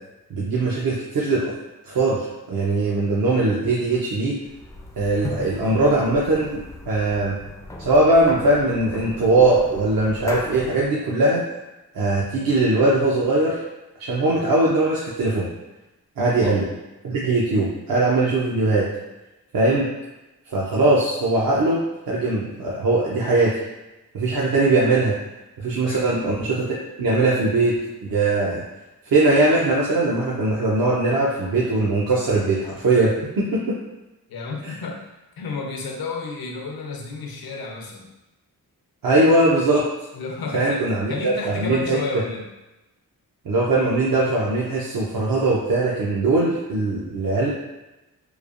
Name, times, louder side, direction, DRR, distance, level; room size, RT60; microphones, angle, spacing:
voice 1, 0.3-1.5 1.8-4.4 5.0-7.4 7.8-11.4 11.9-13.6 14.0-15.5 16.2-16.6 17.0-18.9 19.5-19.9 20.5-21.8 22.1-23.6 24.1-25.1 25.6-27.8 28.0-28.6 29.1-33.8 34.6-34.7 39.0-39.9 40.5-42.0 43.5-47.5, right 2 dB, 65° right, -5 dB, 0.6 m, -20 dB
sound 1, 4.4-10.9, left 2 dB, 10° left, 0.3 m, -38 dB
voice 2, 34.3-35.1 35.4-38.1 40.1-42.5, left 3 dB, 75° left, 1 dB, 0.6 m, -31 dB
3.2 x 2.2 x 2.4 m, 1.0 s
cardioid pair, 60°, 37 cm